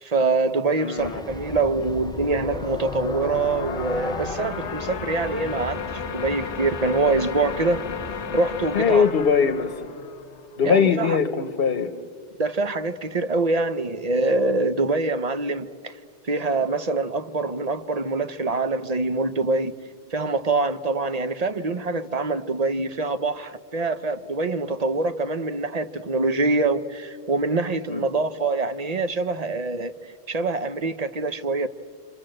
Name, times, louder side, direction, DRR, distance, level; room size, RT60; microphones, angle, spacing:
voice 1, 0.0-7.8 8.3-9.1 10.6-11.2 12.4-16.0 16.2-19.7 20.1-29.9 30.3-31.7, right 3 dB, 40° right, 0.8 m, -25 dB
voice 2, 0.8-1.2 8.7-9.8 10.6-11.9 27.9-28.0, left 6 dB, 60° left, 1.1 m, -21 dB
Train, 1.0-9.1, equal, 5° left, 0.5 m, -39 dB
sound 1, 1.3-10.9, left 6 dB, 85° left, 1.3 m, -34 dB
30.0 x 25.5 x 7.7 m
omnidirectional pair, 1.2 m